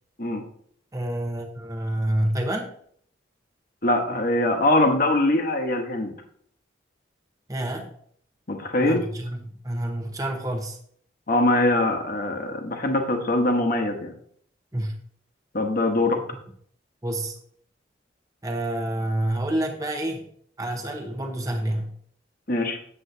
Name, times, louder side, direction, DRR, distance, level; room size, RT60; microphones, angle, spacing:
voice 1, 0.9-2.7 7.5-7.9 8.8-10.8 14.7-14.9 17.0-17.3 18.4-20.3 20.6-21.9, right 1 dB, 20° right, 3 dB, 0.9 m, -28 dB
voice 2, 3.8-6.1 8.5-9.0 11.3-14.1 15.5-16.2 22.5-22.8, left 2 dB, 50° left, 4 dB, 1.1 m, -22 dB
7.9 x 7.7 x 2.7 m, 0.62 s
head